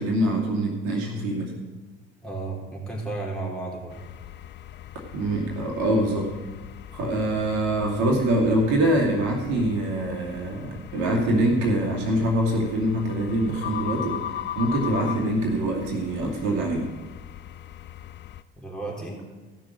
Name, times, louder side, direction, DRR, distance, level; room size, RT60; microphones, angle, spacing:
voice 1, 0.0-1.5 5.1-6.3 6.9-14.2 14.6-16.9, right 1 dB, 60° right, -1 dB, 2.4 m, -24 dB
voice 2, 2.2-4.0 18.6-19.2, right 2 dB, ahead, -3 dB, 3.6 m, -33 dB
sound 1, 3.9-18.4, left 11 dB, 35° left, 0.5 m, -39 dB
15.0 x 6.4 x 6.4 m, 1.2 s
figure-of-eight pair, 60°, 33 cm